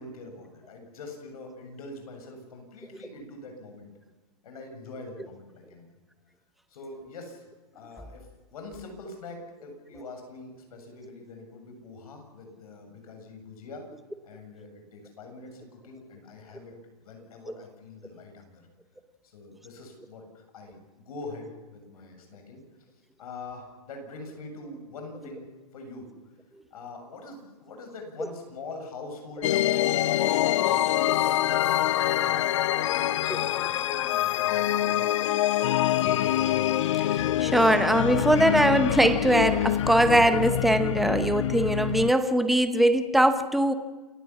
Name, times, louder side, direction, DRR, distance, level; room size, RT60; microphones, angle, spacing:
voice 1, 0.0-3.9 4.4-5.8 6.7-7.4 7.7-13.9 14.2-16.7 17.0-18.6 19.2-22.6 23.2-25.5 25.7-26.1 26.7-31.1 32.0-32.5 32.8-35.1 35.8-36.4, left 2 dB, 65° left, 4 dB, 7.5 m, -44 dB
sound 1, 29.4-42.1, left 13 dB, 50° left, 0.6 m, -25 dB
voice 2, 37.0-43.7, right 1 dB, ahead, 10 dB, 0.7 m, -22 dB
28.0 x 16.0 x 7.2 m, 1.3 s
hypercardioid pair, 165°, 20 cm